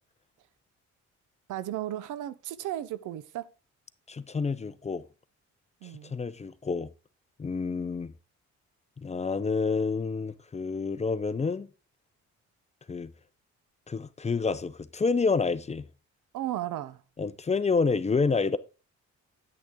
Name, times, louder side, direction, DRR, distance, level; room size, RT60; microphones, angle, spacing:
voice 1, 1.5-3.5 5.8-6.1 16.3-17.0, right 13 dB, 85° right, 0.7 m, -35 dB
voice 2, 4.1-5.0 6.0-6.9 7.4-8.1 9.0-11.7 12.9-13.1 13.9-15.9 17.2-18.6, left 4 dB, 20° left, 0.6 m, -28 dB
9.8 x 6.4 x 3.6 m
cardioid pair, 90°, 30 cm